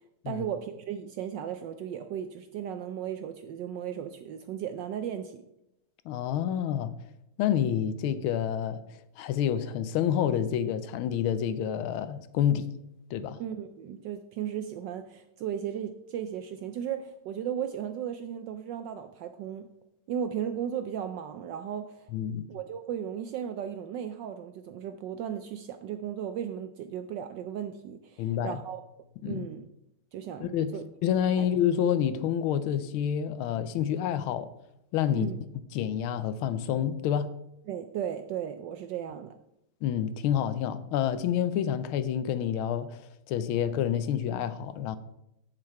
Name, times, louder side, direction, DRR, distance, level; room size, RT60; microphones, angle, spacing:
voice 1, 0.3-5.4 13.4-19.7 20.1-22.1 22.5-28.8 29.2-29.7 30.1-30.8 31.4-31.5 35.1-35.4 37.7-39.4, right 9 dB, 75° right, 1.0 m, -36 dB
voice 2, 6.1-6.9 7.4-8.8 9.2-12.7 13.1-13.4 22.1-22.4 28.2-28.6 29.2-29.5 30.4-30.7 31.0-34.5 34.9-35.3 35.7-37.3 39.8-43.0 43.3-45.0, left 9 dB, 80° left, 1.4 m, -28 dB
7.6 x 7.4 x 4.7 m
omnidirectional pair, 2.4 m